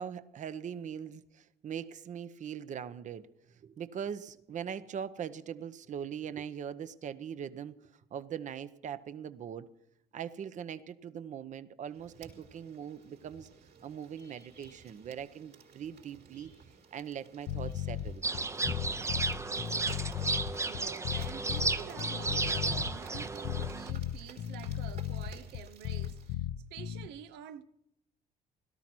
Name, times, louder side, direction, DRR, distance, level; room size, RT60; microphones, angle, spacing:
voice 1, 0.0-9.7 10.1-13.5 13.8-16.5 16.9-18.2, right 8 dB, 45° right, 0.9 m, -41 dB
sound 1, 11.9-26.3, right 6 dB, 70° right, 4.2 m, -56 dB
sound 2, 17.5-27.1, left 11 dB, 70° left, 0.8 m, -36 dB
sound 3, 18.2-23.9, right 3 dB, 15° right, 0.7 m, -33 dB
voice 2, 20.6-27.6, right 9 dB, 85° right, 0.8 m, -48 dB
17.5 x 13.0 x 6.1 m
cardioid pair, 110°, 17 cm